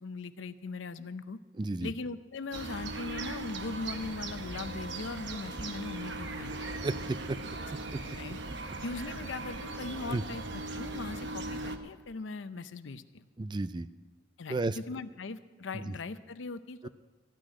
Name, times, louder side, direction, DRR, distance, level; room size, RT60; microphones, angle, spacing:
voice 1, 0.0-1.4 1.8-6.8 8.2-8.4 8.8-10.4 10.7-13.2 14.4-16.9, left 3 dB, 85° left, 12 dB, 0.6 m, -40 dB
voice 2, 1.6-1.9 6.8-7.4 10.1-10.2 13.4-13.9 14.5-14.8 15.8-16.0 16.8-16.9, right 2 dB, 25° right, 14 dB, 0.3 m, -32 dB
sound 1, 2.5-11.8, right 2 dB, 70° right, 1.0 m, -39 dB
14.5 x 6.3 x 9.8 m, 1.3 s
head